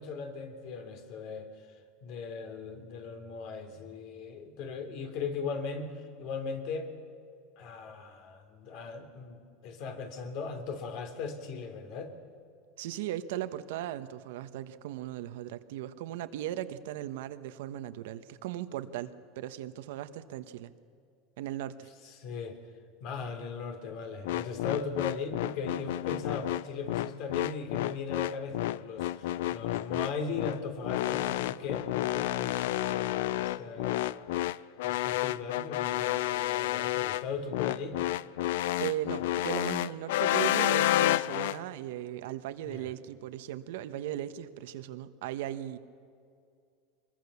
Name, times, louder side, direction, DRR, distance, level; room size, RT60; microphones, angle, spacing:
voice 1, 0.0-1.5 2.0-6.9 7.6-12.1 22.0-22.6 23.0-34.3 34.8-38.0 42.6-42.9, left 5 dB, 55° left, 7 dB, 3.2 m, -38 dB
voice 2, 12.8-20.7 21.4-21.9 38.8-45.8, right 12 dB, 80° right, 11 dB, 1.2 m, -37 dB
sound 1, 24.3-41.6, left 15 dB, 80° left, 0.5 m, -30 dB
24.0 x 21.5 x 7.1 m, 2.3 s
supercardioid pair, 130°, 0 cm